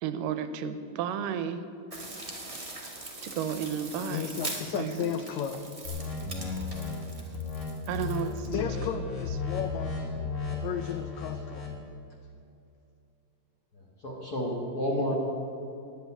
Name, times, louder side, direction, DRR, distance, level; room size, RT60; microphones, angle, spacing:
voice 1, 0.0-1.6 3.2-4.4 4.7-5.1 7.9-8.7 8.9-9.0, right 8 dB, 85° right, 10 dB, 2.3 m, -33 dB
sound 1, 1.9-8.5, right 2 dB, 35° right, 0.5 m, -42 dB
voice 2, 4.1-5.7 8.5-10.1 10.5-11.7, left 8 dB, 85° left, 8 dB, 1.6 m, -34 dB
sound 2, 5.9-6.9 7.3-7.6 7.9-8.2 8.5-11.8, left 5 dB, 60° left, 3.4 m, -34 dB
voice 3, 14.0-15.2, equal, 45° left, -2 dB, 1.2 m, -30 dB
10.5 x 8.3 x 9.2 m, 2.5 s
omnidirectional pair, 3.8 m